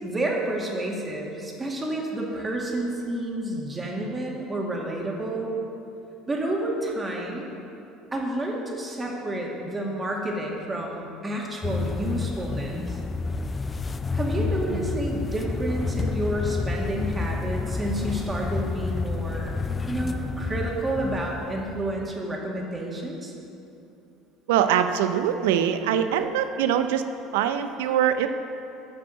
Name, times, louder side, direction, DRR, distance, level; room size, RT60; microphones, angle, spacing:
voice 1, 0.0-5.5 6.3-7.5 8.1-13.0 14.1-19.5 19.9-23.3, right 1 dB, 20° right, -1 dB, 2.2 m, -30 dB
sound 1, 11.6-22.2, left 4 dB, 25° left, 0.4 m, -30 dB
voice 2, 14.4-14.9 24.5-27.0 27.3-28.3, right 9 dB, 80° right, 9 dB, 0.6 m, -23 dB
9.1 x 6.1 x 7.5 m, 2.7 s
hypercardioid pair, 80°, 0 cm